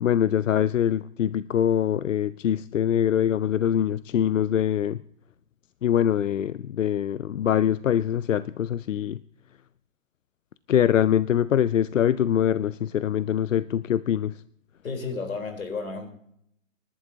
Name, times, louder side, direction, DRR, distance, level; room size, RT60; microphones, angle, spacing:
voice 1, 0.0-5.0 5.8-9.2 10.7-14.3, left 10 dB, 70° left, 17 dB, 0.6 m, -23 dB
voice 2, 14.8-16.1, left 4 dB, 85° left, 4 dB, 3.9 m, -32 dB
27.5 x 11.5 x 2.8 m, 0.71 s
hypercardioid pair, 160°, 40 cm